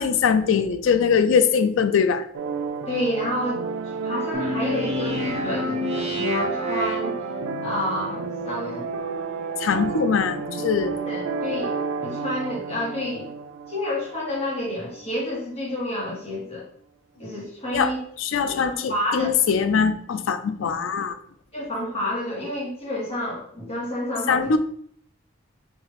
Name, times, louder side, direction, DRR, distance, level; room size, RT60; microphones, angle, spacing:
voice 1, 0.0-2.3 9.6-10.9 17.7-17.9 18.2-21.2 24.3-24.6, left 6 dB, 75° left, 10 dB, 0.4 m, -22 dB
sound 1, 2.3-15.1, right 5 dB, 85° right, 0.4 m, -31 dB
voice 2, 2.9-3.6 4.0-7.2 7.6-8.9 11.1-13.3 13.7-16.6 17.2-18.0 18.7-19.4 21.5-24.5, left 1 dB, 30° left, -5 dB, 1.6 m, -29 dB
sound 2, 4.3-7.6, left 2 dB, 30° right, 0.7 m, -30 dB
4.5 x 2.8 x 3.0 m, 0.64 s
head